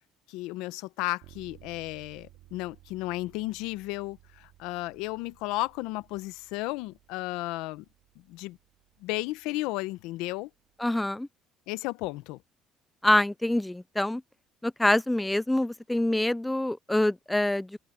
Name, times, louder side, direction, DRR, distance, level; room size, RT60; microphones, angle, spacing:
voice 1, 0.3-7.8 8.3-8.6 9.0-10.5 11.7-12.4, left 20 dB, 85° left, 0.8 m, -34 dB
sound 1, 1.2-11.0, right 16 dB, 80° right, 2.7 m, -58 dB
voice 2, 10.8-11.3 13.0-14.2 14.6-17.8, left 1 dB, 5° left, 0.4 m, -25 dB
cardioid pair, 110°, 0 cm